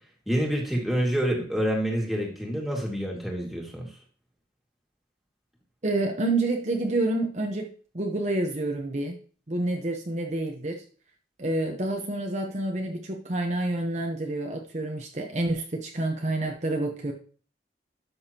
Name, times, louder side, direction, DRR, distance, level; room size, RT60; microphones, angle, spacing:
voice 1, 0.3-3.9, equal, ahead, -1 dB, 2.1 m, -27 dB
voice 2, 5.8-7.7 7.9-9.2 9.5-10.8 11.4-17.1, right 2 dB, 40° right, 1 dB, 1.0 m, -28 dB
12.0 x 6.4 x 2.9 m, 0.42 s
head